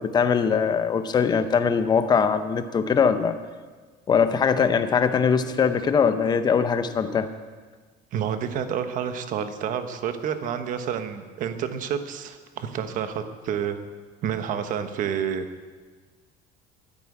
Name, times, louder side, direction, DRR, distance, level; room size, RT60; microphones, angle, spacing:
voice 1, 0.0-3.4 4.1-7.3, left 6 dB, 20° left, 10 dB, 0.7 m, -21 dB
voice 2, 8.1-13.8 14.2-15.5, right 8 dB, 40° right, 9 dB, 1.1 m, -29 dB
13.0 x 10.5 x 8.5 m, 1.4 s
cardioid pair, 175°, 20 cm